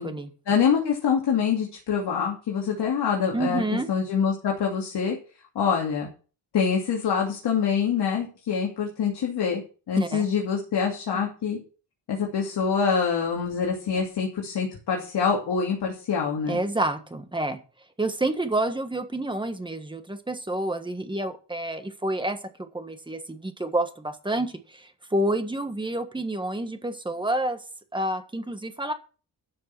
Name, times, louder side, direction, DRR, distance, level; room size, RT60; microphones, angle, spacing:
voice 1, 0.5-3.6 3.9-5.2 5.5-6.1 6.5-9.6 9.9-11.6 12.1-16.6, left 6 dB, 65° left, -1 dB, 2.8 m, -25 dB
voice 2, 3.3-3.9 9.9-10.2 16.5-17.6 18.0-27.6 27.9-28.9, right 1 dB, 10° right, 7 dB, 1.4 m, -29 dB
12.0 x 6.6 x 6.1 m, 0.36 s
wide cardioid pair, 155°, 43 cm